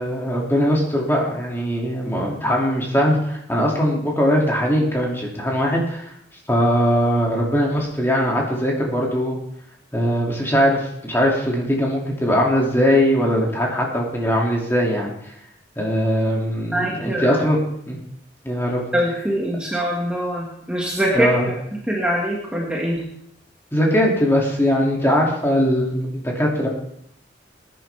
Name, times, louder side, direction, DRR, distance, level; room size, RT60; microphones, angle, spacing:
voice 1, 0.0-6.1 6.5-9.4 9.9-15.3 15.8-17.6 17.9-18.0 18.4-18.8 21.1-21.5 23.7-26.7, equal, 15° left, -2 dB, 2.4 m, -20 dB
voice 2, 16.6-17.4 18.9-21.4 21.9-23.0, right 1 dB, 5° right, -4 dB, 1.7 m, -23 dB
20.0 x 10.5 x 3.4 m, 0.73 s
head